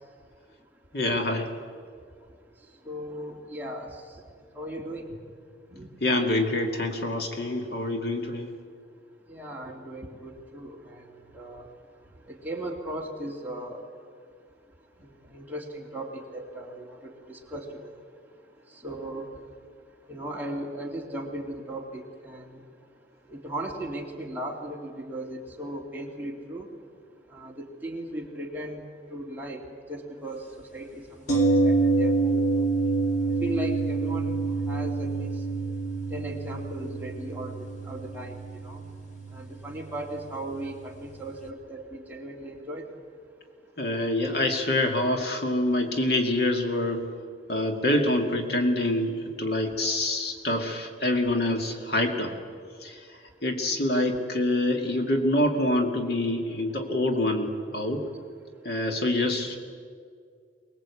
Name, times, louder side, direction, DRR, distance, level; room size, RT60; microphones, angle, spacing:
voice 1, 0.9-1.5 6.0-8.5 43.8-47.1 47.5-52.3 52.8-53.0 53.4-58.0 58.6-59.6, left 1 dB, 60° left, 3 dB, 2.2 m, -26 dB
voice 2, 2.8-4.0 4.5-5.2 5.7-5.9 9.3-11.7 12.3-13.9 15.0-17.9 18.7-19.3 20.1-22.6 23.3-26.7 27.3-28.8 29.1-29.6 29.9-32.5 33.4-34.4 34.7-35.3 36.1-38.8 39.3-42.8, right 1 dB, 10° right, -2 dB, 2.6 m, -37 dB
sound 1, 31.3-41.2 41.5-41.6, right 3 dB, 40° left, 2.0 m, -27 dB
24.0 x 20.0 x 8.4 m, 2.2 s
head